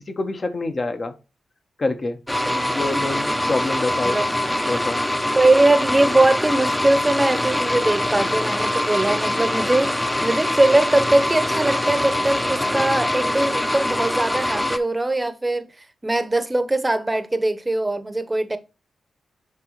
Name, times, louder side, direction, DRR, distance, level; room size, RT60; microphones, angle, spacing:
voice 1, 0.1-1.1 1.8-2.2 2.6-4.2 4.7-5.0, left 2 dB, 45° left, 1.2 m, -26 dB
sound 1, 2.3-14.8, left 1 dB, 10° left, 0.8 m, -23 dB
voice 2, 5.3-15.7 16.0-18.6, right 2 dB, 20° right, 0.9 m, -21 dB
9.3 x 3.6 x 3.2 m
supercardioid pair, 40°, 0 cm